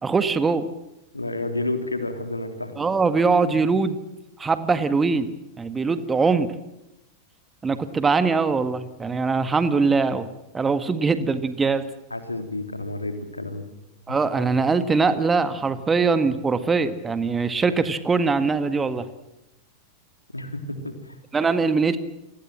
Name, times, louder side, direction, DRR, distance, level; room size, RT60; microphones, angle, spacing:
voice 1, 0.0-0.7 2.8-4.0 4.4-5.3 5.6-6.5 7.6-10.3 10.5-11.8 14.1-19.1 21.3-22.0, right 4 dB, 15° right, 12 dB, 1.7 m, -22 dB
voice 2, 1.1-2.8 12.1-13.7 14.1-14.2 20.3-21.2, left 2 dB, 85° left, 7 dB, 3.2 m, -30 dB
29.0 x 21.0 x 7.7 m, 0.91 s
figure-of-eight pair, 90°, 0 cm